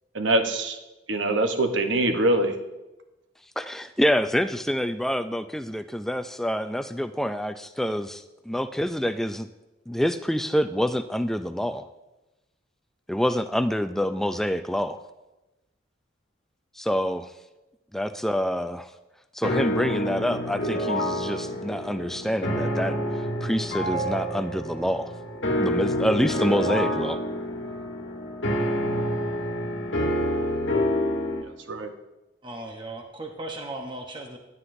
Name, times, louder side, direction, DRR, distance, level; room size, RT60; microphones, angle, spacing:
voice 1, 0.1-0.8 1.1-2.5 31.7-31.9, right 1 dB, 75° right, 6 dB, 1.0 m, -23 dB
voice 2, 3.6-9.5 9.9-11.9 13.1-15.0 16.8-17.3 17.9-18.9 19.3-25.1 25.6-27.2, equal, ahead, 9 dB, 0.3 m, -27 dB
sound 1, 19.4-31.4, equal, 75° left, 1.4 m, -28 dB
voice 3, 32.4-34.4, right 2 dB, 25° right, 2 dB, 0.9 m, -37 dB
16.0 x 9.7 x 2.6 m, 1.0 s
head